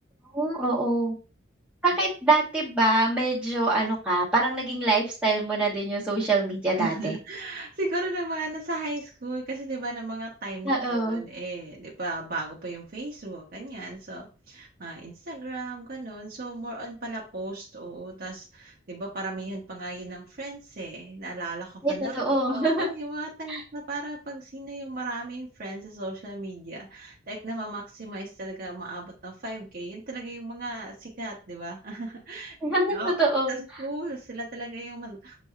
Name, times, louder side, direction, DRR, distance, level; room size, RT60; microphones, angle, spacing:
voice 1, 0.3-1.1 1.8-7.1 10.6-11.2 21.8-22.9 23.5-23.6 32.6-33.6, right 2 dB, 5° right, -6 dB, 1.2 m, -24 dB
voice 2, 6.8-22.2 22.5-32.6 32.9-33.1 33.5-35.4, right 2 dB, 50° right, -3 dB, 0.9 m, -36 dB
6.8 x 3.0 x 2.4 m, 0.33 s
head